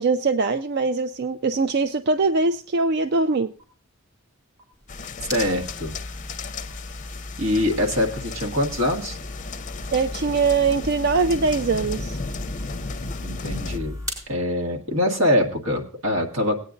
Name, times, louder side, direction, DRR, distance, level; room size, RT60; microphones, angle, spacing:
voice 1, 0.0-3.5 9.9-12.2, right 4 dB, 55° right, 10 dB, 0.4 m, -22 dB
sound 1, 3.6-3.7 4.6-4.7 5.6-5.7 6.6-6.7 7.6-7.7 8.6-8.7 9.6-9.7 10.6-10.7 11.6-11.7 12.6-12.7, right 2 dB, 35° right, 3.9 m, -54 dB
sound 2, 4.7-14.3, left 1 dB, 15° right, 4.2 m, -36 dB
sound 3, 4.9-13.8, left 4 dB, 35° left, 0.5 m, -35 dB
voice 2, 5.3-6.0 7.4-9.2 13.2-13.9 14.3-16.6, left 1 dB, 85° right, 2 dB, 1.8 m, -23 dB
18.5 x 9.0 x 2.6 m, 0.39 s
head